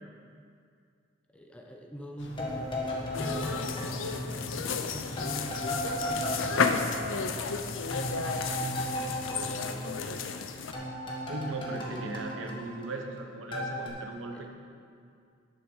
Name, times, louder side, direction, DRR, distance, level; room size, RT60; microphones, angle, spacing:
voice 1, 1.3-7.8 8.9-10.2 11.9-12.1 12.5-12.8 14.3-14.5, equal, 5° left, 1 dB, 0.7 m, -43 dB
sound 1, 2.2-8.4, left 1 dB, 65° left, 1.3 m, -44 dB
sound 2, 2.4-4.8 5.2-10.4 10.7-13.2 13.5-13.9, left 1 dB, 25° left, 1.6 m, -36 dB
sound 3, 3.1-10.7, left 5 dB, 85° left, 0.6 m, -33 dB
voice 2, 11.3-14.5, right 2 dB, 80° right, 3 dB, 1.2 m, -38 dB
10.5 x 6.7 x 6.4 m, 2.3 s
head